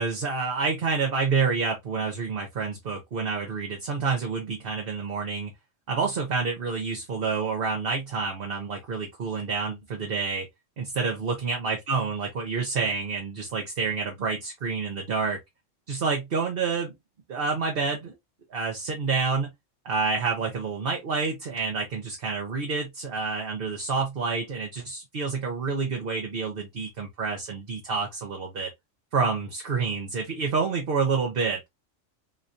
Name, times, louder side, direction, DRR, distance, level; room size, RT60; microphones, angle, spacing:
voice 1, 0.0-5.5 5.9-10.5 10.8-15.4 15.9-16.9 17.3-18.1 18.5-19.5 19.8-28.7 29.1-31.7, right 4 dB, 50° right, 1.0 m, -28 dB
3.8 x 3.1 x 2.6 m
omnidirectional pair, 1.4 m